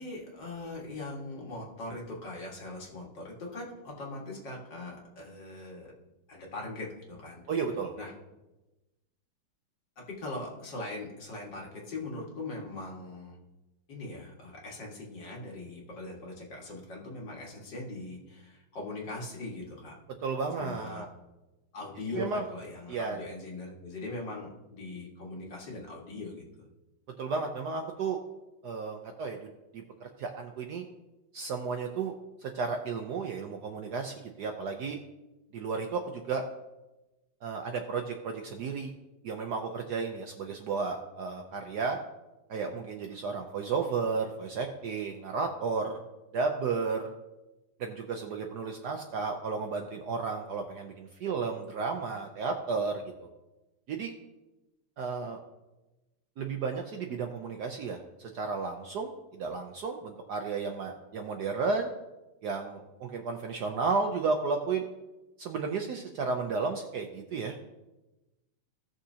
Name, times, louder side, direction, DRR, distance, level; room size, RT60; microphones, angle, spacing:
voice 1, 0.0-5.9 6.3-7.4 8.0-8.1 10.0-13.4 13.9-19.9 20.6-21.0 21.7-26.7, left 2 dB, 60° left, -2 dB, 2.5 m, -40 dB
voice 2, 7.5-7.9 20.2-21.1 22.2-22.4 22.9-23.2 27.2-28.2 28.6-29.4 29.7-30.8 31.3-32.1 32.4-35.0 35.5-36.4 37.4-38.9 39.2-42.0 42.5-46.0 46.3-47.1 47.8-53.3 53.9-54.1 55.0-55.4 56.4-61.9 62.4-64.8 65.4-67.5, right 4 dB, 65° right, 4 dB, 1.1 m, -33 dB
17.0 x 6.4 x 2.8 m, 1.0 s
omnidirectional pair, 2.3 m